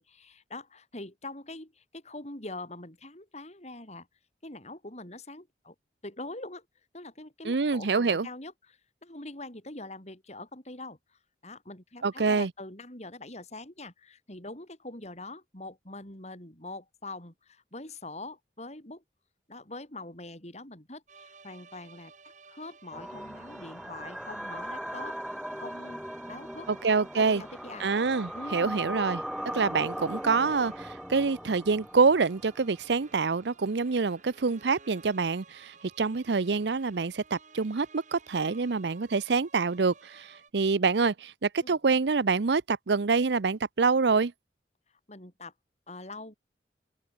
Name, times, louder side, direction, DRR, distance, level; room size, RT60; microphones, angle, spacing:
voice 1, 0.0-4.1 4.4-5.8 6.0-6.7 6.9-11.0 11.4-19.0 19.5-22.1 22.5-25.2 25.5-26.7 27.1-27.9 28.3-29.0 41.6-41.8 45.1-45.5 45.9-46.3, left 2 dB, 40° left, 5.4 m, -43 dB
voice 2, 7.4-8.3 12.0-12.5 26.7-27.4 27.8-29.2 29.5-40.3 40.5-44.3, right 4 dB, 75° right, 0.7 m, -26 dB
sound 1, 21.1-40.5, right 5 dB, 45° right, 3.4 m, -55 dB
sound 2, 22.9-33.0, equal, ahead, 1.1 m, -39 dB
open air
head